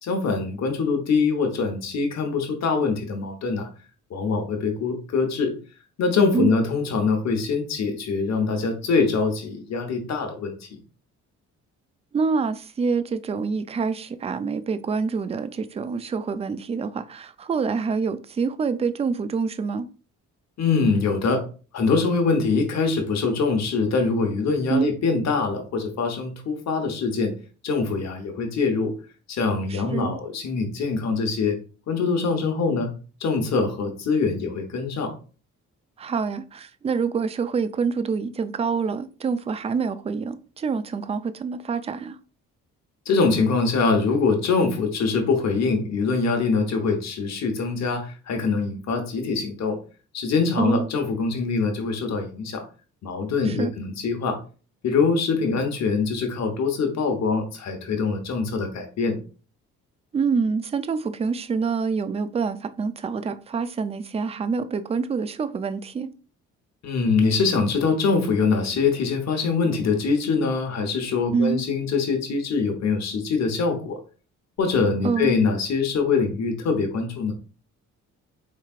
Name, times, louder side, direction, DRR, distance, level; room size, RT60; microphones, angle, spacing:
voice 1, 0.0-3.7 4.1-5.5 6.0-10.8 20.6-21.4 21.7-27.3 27.6-28.9 29.3-31.6 31.9-32.9 33.2-35.1 43.1-49.8 50.1-52.6 53.0-54.4 54.8-59.2 66.8-74.0 74.6-77.3, left 4 dB, 60° left, 1.0 m, -23 dB
voice 2, 12.1-19.9 24.7-24.9 29.7-30.2 36.0-42.2 50.6-50.9 53.4-53.7 60.1-66.1 71.3-71.6 75.0-75.5, right 5 dB, 20° right, 0.4 m, -26 dB
4.4 x 3.2 x 2.4 m
cardioid pair, 90°, 30 cm